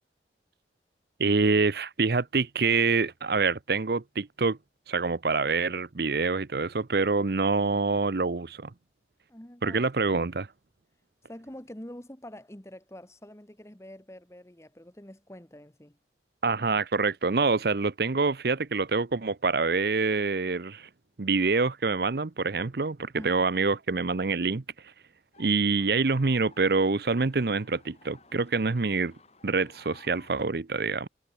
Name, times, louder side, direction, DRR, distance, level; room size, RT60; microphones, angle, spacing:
voice 1, 1.2-4.6 4.9-8.7 9.6-10.5 16.4-20.9 21.2-24.6 25.4-29.1 29.4-31.1, right 4 dB, 55° right, 0.7 m, -26 dB
voice 2, 9.3-9.8 11.3-16.0 23.1-23.5, left 1 dB, 15° left, 1.5 m, -46 dB
sound 1, 25.3-30.5, left 3 dB, 35° left, 4.4 m, -56 dB
head